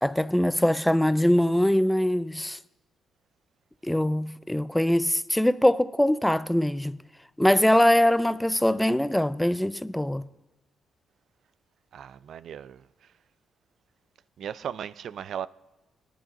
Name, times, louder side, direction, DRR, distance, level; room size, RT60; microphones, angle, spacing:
voice 1, 0.0-2.6 3.8-7.0 7.4-10.3, left 1 dB, 5° left, 0.4 m, -22 dB
voice 2, 11.9-12.9 14.4-15.5, right 9 dB, 70° right, 0.3 m, -36 dB
19.0 x 11.0 x 2.6 m
supercardioid pair, 65°, 0 cm